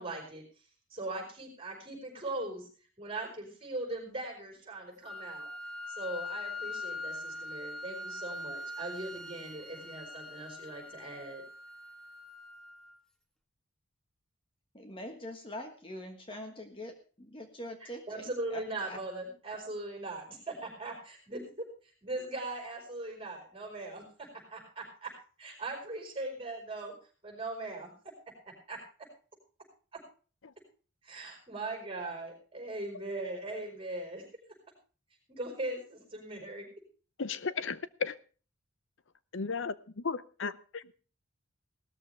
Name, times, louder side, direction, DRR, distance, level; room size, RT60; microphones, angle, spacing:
voice 1, 0.0-2.7 3.0-5.5 5.9-11.4 17.8-25.1 25.4-26.9 27.2-27.9 28.4-28.8 29.9-30.0 31.0-34.3 35.3-36.7, right 2 dB, 25° right, 5.1 m, -40 dB
Wind instrument woodwind instrument, 5.0-13.0, left 2 dB, 5° left, 1.5 m, -42 dB
voice 2, 14.7-18.2 18.5-19.0, left 1 dB, 25° left, 1.5 m, -43 dB
voice 3, 37.2-38.2 39.3-40.5, left 5 dB, 60° left, 0.7 m, -34 dB
17.5 x 13.5 x 3.4 m
head